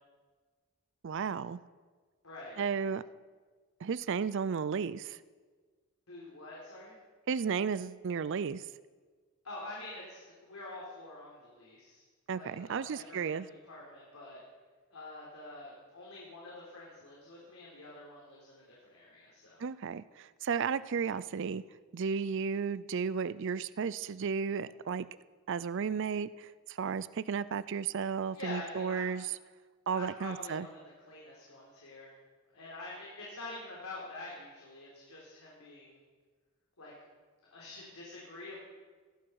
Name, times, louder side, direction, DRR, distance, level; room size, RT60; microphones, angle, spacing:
voice 1, 1.0-1.6 2.6-3.0 3.8-5.2 7.3-8.6 12.3-13.5 19.6-21.6 21.9-25.1 25.5-29.2 29.9-30.7, right 6 dB, 55° right, 16 dB, 0.4 m, -33 dB
voice 2, 2.2-2.6 6.1-6.9 9.4-12.0 12.4-14.4 14.9-19.6 28.3-29.1 29.9-30.8 31.1-32.1 32.5-36.0 36.8-36.9 37.5-38.6, left 2 dB, 75° left, -5 dB, 3.9 m, -46 dB
18.0 x 15.0 x 4.8 m, 1.5 s
head